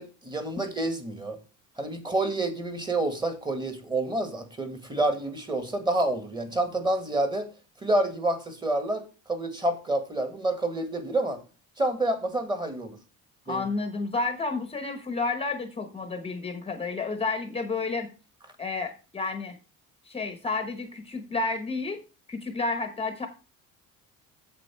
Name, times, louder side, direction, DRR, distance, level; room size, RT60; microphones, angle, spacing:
voice 1, 0.0-1.4 1.8-7.5 7.8-11.4 11.8-12.9 13.5-13.6, right 2 dB, 15° right, 8 dB, 1.6 m, -28 dB
voice 2, 13.5-18.1 18.6-19.5 20.0-22.0 22.3-23.3, left 3 dB, 15° left, 7 dB, 0.9 m, -31 dB
7.8 x 7.7 x 4.5 m, 0.33 s
cardioid pair, 150°, 33 cm